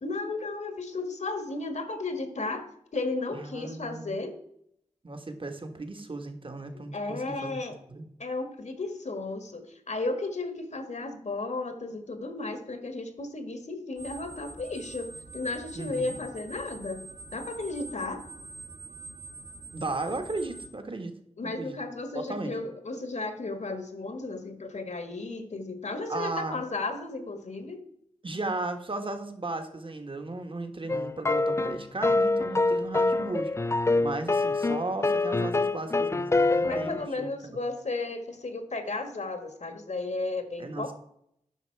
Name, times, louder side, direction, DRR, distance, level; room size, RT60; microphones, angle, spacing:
voice 1, 0.0-2.6 2.9-4.3 6.7-7.8 8.2-15.1 15.3-17.0 17.3-18.2 21.4-27.8 36.6-40.9, left 3 dB, 65° left, 7 dB, 1.6 m, -34 dB
voice 2, 3.3-4.2 5.0-7.6 7.9-8.0 15.7-16.2 19.7-21.1 21.4-21.8 22.3-22.6 26.1-26.6 28.2-33.5 34.0-36.9 37.2-37.3 40.6-40.9, right 2 dB, 45° right, 7 dB, 1.5 m, -35 dB
sound 1, 14.0-20.7, right 3 dB, 60° right, 1.5 m, -45 dB
sound 2, 30.9-37.1, left 3 dB, 20° left, 0.3 m, -25 dB
10.0 x 5.9 x 4.6 m, 0.73 s
cardioid pair, 45°, 13 cm